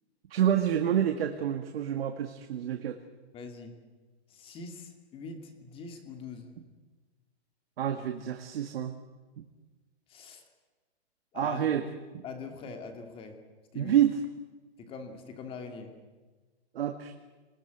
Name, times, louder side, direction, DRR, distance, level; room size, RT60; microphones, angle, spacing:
voice 1, 0.3-3.0 7.8-8.9 9.4-9.5 11.3-11.8 12.1-12.2 13.8-14.2 16.7-17.2, right 10 dB, 60° right, 6 dB, 1.9 m, -28 dB
voice 2, 3.3-3.7 4.3-6.5 10.1-10.4 11.3-11.7 12.2-13.4 13.7-14.0 14.8-15.9, left 4 dB, 15° left, 6 dB, 2.6 m, -43 dB
28.0 x 20.5 x 9.4 m, 1.3 s
hypercardioid pair, 165°, 33 cm